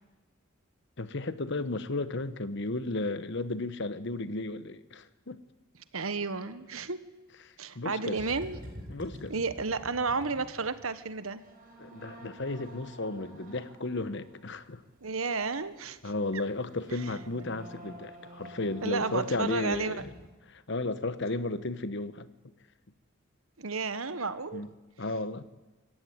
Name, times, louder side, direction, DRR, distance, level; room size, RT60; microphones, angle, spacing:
voice 1, 1.0-5.4 7.4-8.3 8.9-9.3 11.8-14.8 16.0-20.1 20.5-22.3 24.5-24.7 25.0-25.4, left 2 dB, 55° left, 13 dB, 1.1 m, -34 dB
voice 2, 5.9-7.0 7.6-8.6 9.3-11.4 15.0-16.0 16.9-17.0 18.8-20.0 23.6-24.6, right 4 dB, 80° right, 13 dB, 1.3 m, -32 dB
sound 1, 8.1-20.3, equal, 40° right, 6.1 m, -49 dB
25.5 x 15.0 x 9.5 m, 1.1 s
head